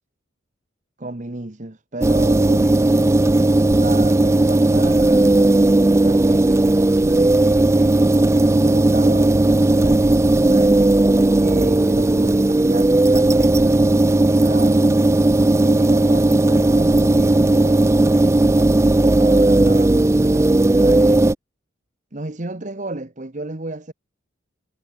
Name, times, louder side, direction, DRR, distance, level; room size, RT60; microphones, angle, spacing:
voice 1, 1.0-2.8 3.7-9.4 9.7-13.9 14.4-14.9 15.6-18.0 18.5-21.2 22.1-23.9, right 2 dB, 40° right, 1.3 m, -32 dB
sound 1, 2.0-21.3, right 2 dB, 15° right, 0.3 m, -15 dB
head